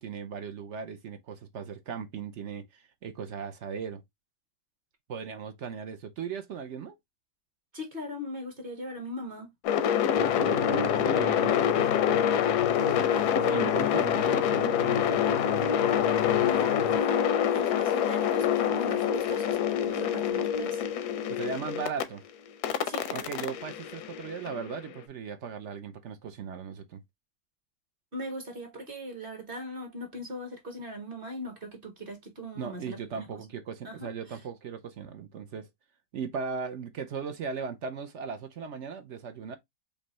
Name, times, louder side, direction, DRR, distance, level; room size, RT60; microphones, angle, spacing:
voice 1, 0.0-4.0 5.1-7.0 10.2-12.3 13.3-15.4 21.3-22.2 23.1-27.0 32.6-35.7 36.1-39.6, right 6 dB, 60° right, 0.8 m, -38 dB
voice 2, 7.7-9.5 16.3-21.1 22.8-23.3 28.1-33.3 33.8-34.1, equal, 35° right, 1.5 m, -39 dB
sound 1, 9.6-22.0 22.6-24.8, left 9 dB, 90° left, 1.2 m, -26 dB
sound 2, 10.2-17.0, left 7 dB, 55° left, 0.7 m, -39 dB
5.2 x 2.7 x 3.0 m
omnidirectional pair, 1.7 m